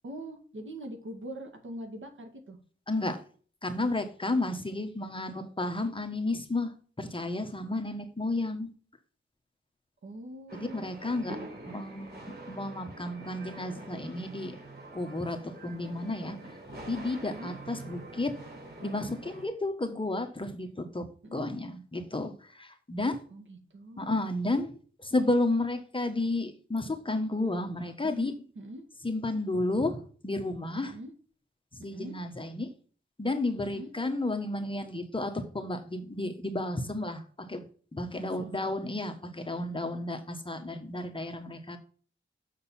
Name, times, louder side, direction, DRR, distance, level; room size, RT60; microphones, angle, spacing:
voice 1, 0.0-2.6 10.0-10.9 17.2-17.5 21.2-21.5 23.3-24.4 28.0-28.8 30.8-31.1 31.8-32.2 33.6-33.9 38.0-38.6, right 1 dB, 70° right, 2.1 m, -43 dB
voice 2, 2.9-3.2 3.6-8.7 10.7-14.6 14.9-16.5 16.9-18.4 18.8-23.2 24.0-24.7 25.0-28.3 29.0-30.9 31.7-32.7 33.2-37.6 37.9-41.8, left 2 dB, 25° left, 1.3 m, -32 dB
sound 1, 10.5-19.5, right 2 dB, 50° right, 4.3 m, -45 dB
6.8 x 6.6 x 4.3 m
wide cardioid pair, 85°, 21 cm